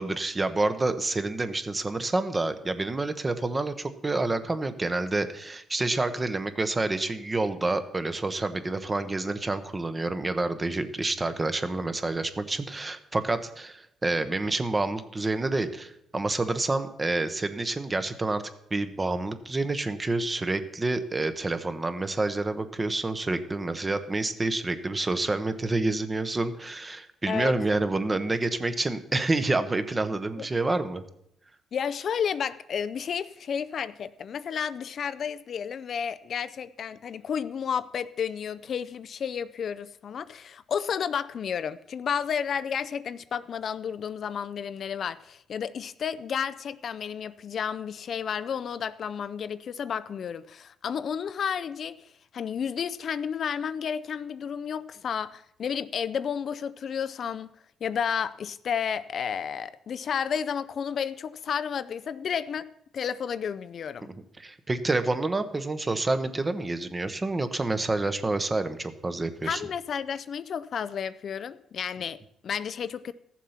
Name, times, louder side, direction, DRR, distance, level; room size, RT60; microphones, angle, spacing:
voice 1, 0.0-18.4 18.7-31.0 64.4-69.6, right 2 dB, 25° right, 1.0 m, -28 dB
voice 2, 31.7-57.5 57.8-62.7 62.9-64.1 69.4-73.1, left 7 dB, 55° left, 0.4 m, -32 dB
14.0 x 7.3 x 5.8 m
cardioid pair, 90°, 0 cm